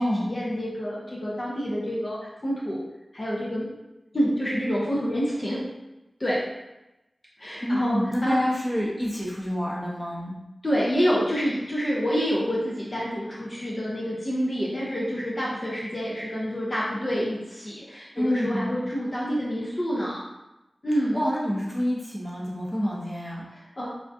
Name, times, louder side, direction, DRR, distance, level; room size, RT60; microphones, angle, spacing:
voice 1, 0.2-2.8 3.1-3.7 4.1-5.6 6.2-6.4 7.4-8.4 10.6-20.2 20.8-21.2 23.5-23.9, equal, 40° left, -5 dB, 0.7 m, -27 dB
voice 2, 7.6-10.4 18.1-18.8 21.1-23.5, equal, 10° left, -5 dB, 0.8 m, -27 dB
3.5 x 2.3 x 2.6 m, 0.97 s
wide cardioid pair, 60°, 0 cm